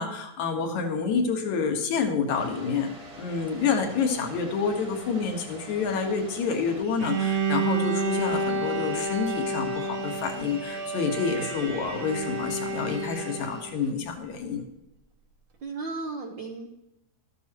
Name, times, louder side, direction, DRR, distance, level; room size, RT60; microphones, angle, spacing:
voice 1, 0.0-14.7, left 5 dB, 75° left, 4 dB, 2.8 m, -28 dB
sound 1, 2.3-13.9, right 1 dB, 25° right, 1.3 m, -46 dB
Bowed string instrument, 7.0-13.7, right 3 dB, 50° right, 1.7 m, -30 dB
voice 2, 15.6-16.7, right 3 dB, 65° right, 2 dB, 1.1 m, -35 dB
13.0 x 12.5 x 3.0 m, 0.91 s
omnidirectional pair, 3.4 m